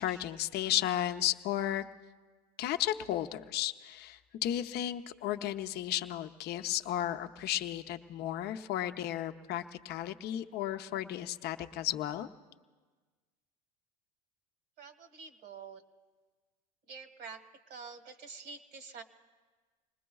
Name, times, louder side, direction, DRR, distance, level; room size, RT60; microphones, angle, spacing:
voice 1, 0.0-1.8 2.6-12.3, left 12 dB, 50° left, 7 dB, 0.7 m, -34 dB
voice 2, 14.8-15.8 16.9-17.4 17.7-19.0, right 5 dB, 50° right, 7 dB, 1.5 m, -47 dB
26.5 x 20.0 x 2.4 m, 1.4 s
hypercardioid pair, 90°, 21 cm